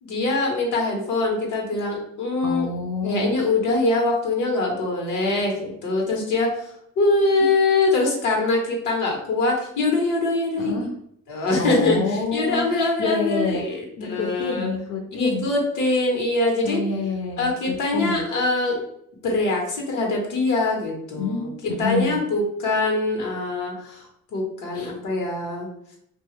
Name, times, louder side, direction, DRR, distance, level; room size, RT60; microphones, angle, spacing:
voice 1, 0.0-2.7 3.0-10.8 11.3-14.7 15.1-16.8 17.4-18.8 19.2-21.5 21.8-25.7, left 2 dB, 85° left, 0 dB, 1.0 m, -23 dB
voice 2, 2.4-3.3 7.4-7.5 10.6-10.9 11.6-15.5 16.6-18.2 21.2-22.2 24.7-24.9, left 3 dB, 50° left, 2 dB, 0.5 m, -28 dB
2.7 x 2.3 x 3.0 m, 0.71 s
cardioid pair, 90°, 30 cm